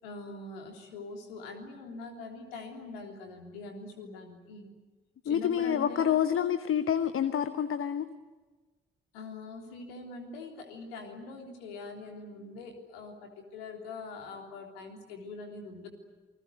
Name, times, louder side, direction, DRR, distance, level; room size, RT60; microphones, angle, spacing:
voice 1, 0.0-4.7 5.2-6.2 9.1-15.9, left 3 dB, 75° left, 3 dB, 3.4 m, -43 dB
voice 2, 5.3-8.1, left 9 dB, 45° left, 12 dB, 1.1 m, -28 dB
28.0 x 20.5 x 9.5 m, 1.3 s
figure-of-eight pair, 40°, 30 cm